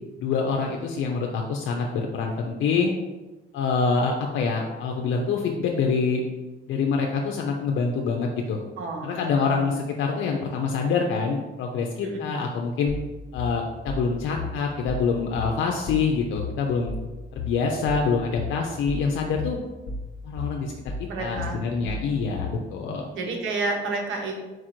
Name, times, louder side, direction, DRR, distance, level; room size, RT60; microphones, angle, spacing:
voice 1, 0.2-2.9 3.5-6.2 6.7-8.6 9.0-12.9 13.3-16.9 17.3-19.6 20.2-23.1, left 5 dB, 80° left, 1 dB, 0.5 m, -26 dB
voice 2, 8.8-9.8 12.0-12.2 21.1-21.5 21.8-21.9 23.1-24.4, right 3 dB, 80° right, 1 dB, 1.0 m, -31 dB
sound 1, 12.9-22.7, left 3 dB, 55° left, 0.9 m, -34 dB
4.6 x 2.4 x 4.4 m, 1.2 s
cardioid pair, 90°, 20 cm